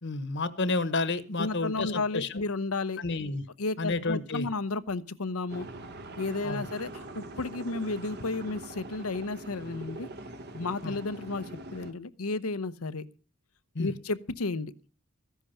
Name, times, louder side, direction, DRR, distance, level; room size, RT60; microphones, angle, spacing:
voice 1, 0.0-2.3 3.0-3.4 3.8-4.5 6.4-6.7 10.8-10.9 13.7-13.9, left 3 dB, 55° left, 14 dB, 1.2 m, -30 dB
voice 2, 1.4-3.0 3.6-5.7 6.2-10.1 10.5-13.0 13.8-14.7, left 3 dB, 90° left, 14 dB, 1.0 m, -32 dB
sound 1, 5.5-11.9, right 2 dB, 50° right, 1.4 m, -43 dB
15.0 x 10.5 x 5.8 m, 0.35 s
head